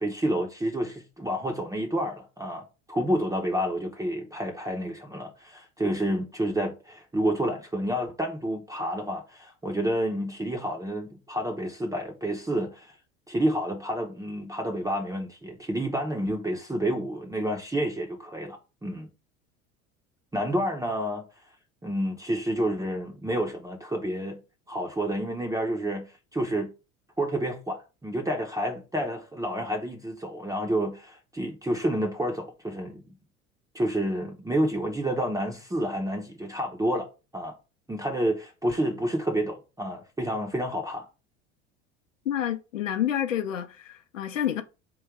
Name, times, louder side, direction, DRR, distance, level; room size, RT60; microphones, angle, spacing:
voice 1, 0.0-13.0 13.3-19.1 20.3-21.4 21.8-24.4 24.7-26.7 27.2-33.0 33.7-37.1 37.3-37.5 37.9-41.1, right 1 dB, 10° right, 0.8 m, -29 dB
voice 2, 42.3-44.6, left 10 dB, 85° left, 0.6 m, -29 dB
3.8 x 2.6 x 4.5 m
figure-of-eight pair, 70°, 38 cm